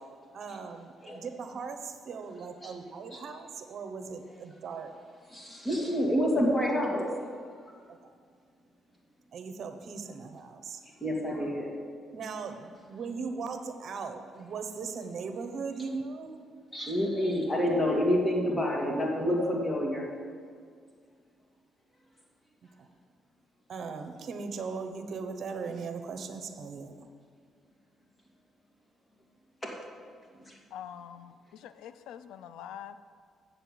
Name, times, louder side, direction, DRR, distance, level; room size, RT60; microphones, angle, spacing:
voice 1, 0.3-4.9 8.0-8.1 9.3-10.8 12.1-16.4 17.2-17.3 22.8-22.9 23.7-27.1, right 5 dB, 55° right, 7 dB, 1.0 m, -38 dB
voice 2, 5.3-7.1 11.0-11.7 16.7-20.1 29.6-29.7, equal, 20° left, -2 dB, 2.5 m, -28 dB
voice 3, 30.7-33.0, left 9 dB, 90° left, 12 dB, 0.4 m, -45 dB
7.7 x 6.9 x 7.8 m, 2.1 s
cardioid pair, 90°, 0 cm